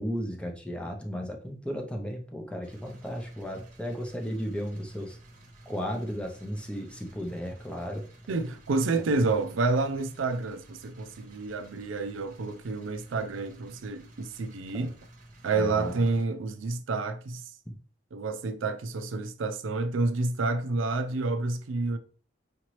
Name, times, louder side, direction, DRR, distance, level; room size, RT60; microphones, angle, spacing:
voice 1, 0.0-5.2 5.7-8.1 9.0-9.3 14.7-14.9 15.5-16.0 17.7-17.8, equal, 5° left, 0.6 m, -35 dB
sound 1, 2.6-16.2, right 1 dB, 45° right, 0.9 m, -52 dB
voice 2, 8.3-14.9 15.4-17.5 18.1-22.0, right 3 dB, 80° right, 0.5 m, -29 dB
5.0 x 2.9 x 3.1 m
head